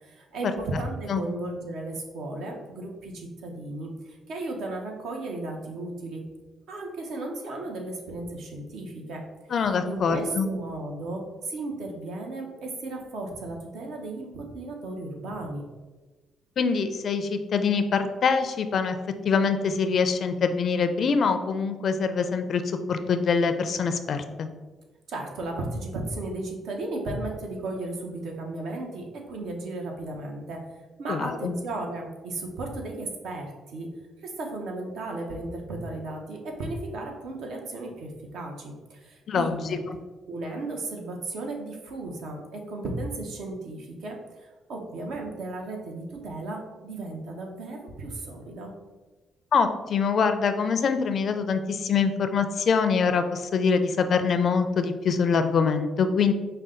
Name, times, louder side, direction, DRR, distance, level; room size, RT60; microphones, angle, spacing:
voice 1, 0.0-6.2 6.7-9.2 9.9-15.6 25.1-30.6 31.0-33.9 34.2-39.8 40.3-48.7, right 2 dB, 80° right, 1 dB, 0.9 m, -35 dB
voice 2, 9.5-10.5 16.6-19.0 19.2-22.6 22.9-24.5 31.1-31.5 39.3-40.0 49.5-56.3, left 5 dB, 55° left, 9 dB, 0.4 m, -24 dB
5.2 x 2.2 x 3.7 m, 1.2 s
cardioid pair, 90°, 0 cm